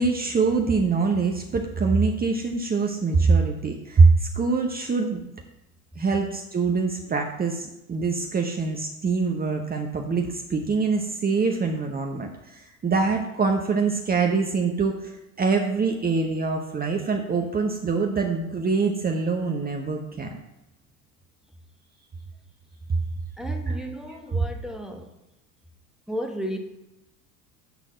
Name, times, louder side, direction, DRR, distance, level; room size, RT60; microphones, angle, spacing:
voice 1, 0.0-5.2 6.0-20.3 23.7-23.8, right 4 dB, 20° right, 2 dB, 1.0 m, -24 dB
voice 2, 23.4-25.2 26.1-26.6, equal, ahead, 3 dB, 1.2 m, -34 dB
10.5 x 4.0 x 6.2 m, 0.93 s
figure-of-eight pair, 70°, 44 cm